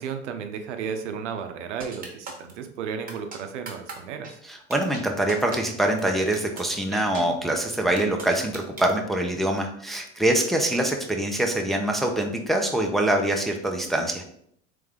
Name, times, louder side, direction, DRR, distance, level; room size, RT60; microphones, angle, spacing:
voice 1, 0.0-4.4, right 6 dB, 85° right, 7 dB, 0.7 m, -33 dB
sound 1, 1.8-2.5 3.1-3.4 3.7-3.9 4.2-4.3 4.7-5.0 5.3-5.6 6.0-6.1 6.3-6.6 6.9-7.2 7.7-8.9, right 4 dB, 25° right, 1.2 m, -37 dB
voice 2, 4.5-14.2, right 1 dB, ahead, 2 dB, 0.6 m, -24 dB
3.5 x 3.3 x 3.5 m, 0.68 s
hypercardioid pair, 95°, 35 cm